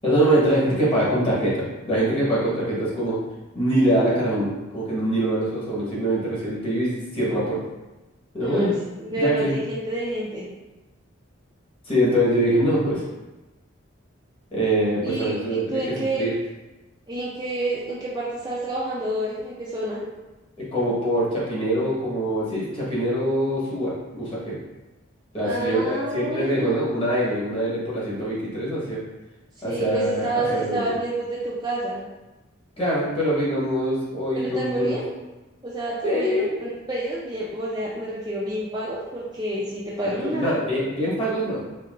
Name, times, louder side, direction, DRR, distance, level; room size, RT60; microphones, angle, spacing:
voice 1, 0.0-3.2 3.5-7.6 8.3-8.7 9.1-9.5 11.8-13.0 14.5-16.3 20.6-24.6 25.3-29.0 29.6-30.9 32.8-34.9 36.0-36.5 40.2-41.7, right 1 dB, 25° left, -8 dB, 1.1 m, -24 dB
voice 2, 8.4-8.7 9.0-10.5 15.0-16.2 17.1-20.0 25.4-26.9 29.6-32.0 34.3-35.0 35.6-40.6, right 1 dB, 20° right, -7 dB, 0.4 m, -29 dB
4.5 x 2.7 x 2.4 m, 1.1 s
head